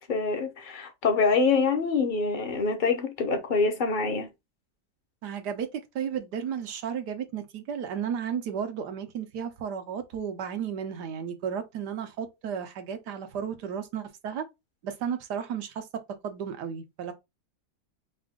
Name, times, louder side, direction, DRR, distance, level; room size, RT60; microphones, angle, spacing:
voice 1, 0.1-4.3, left 4 dB, 40° left, 0.9 m, -25 dB
voice 2, 5.2-14.4 14.8-15.9 16.2-17.1, right 7 dB, 85° right, 1.5 m, -33 dB
4.9 x 2.5 x 3.6 m
omnidirectional pair, 1.7 m